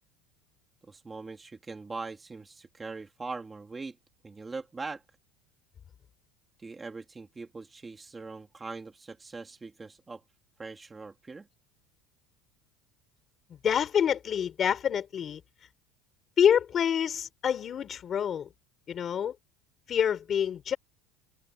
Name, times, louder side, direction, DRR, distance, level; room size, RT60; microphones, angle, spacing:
voice 1, 0.8-4.0 4.2-5.0 6.6-10.2 10.6-11.5, right 3 dB, 15° right, 2.4 m, -41 dB
voice 2, 13.6-15.4 16.4-18.5 18.9-19.4 19.9-20.8, left 8 dB, 30° left, 3.7 m, -27 dB
open air
cardioid pair, 160°, 0 cm